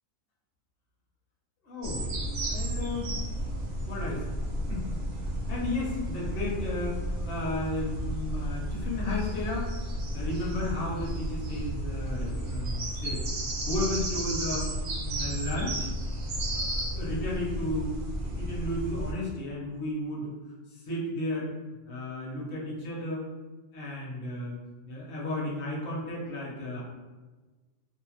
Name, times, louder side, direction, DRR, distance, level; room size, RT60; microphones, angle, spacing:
voice 1, 1.6-2.0 2.5-3.1 3.8-4.2 4.7-5.0 5.5-9.7 10.1-13.2 13.6-14.7 15.0-15.9 16.5-16.7 16.9-17.9 18.2-20.3 20.7-21.5 21.9-23.2 23.7-24.6 24.9-26.8, left 1 dB, 50° left, -4 dB, 0.9 m, -33 dB
sound 1, 1.8-19.1, right 1 dB, 60° right, 0.8 m, -33 dB
2.7 x 2.1 x 3.0 m, 1.3 s
omnidirectional pair, 1.4 m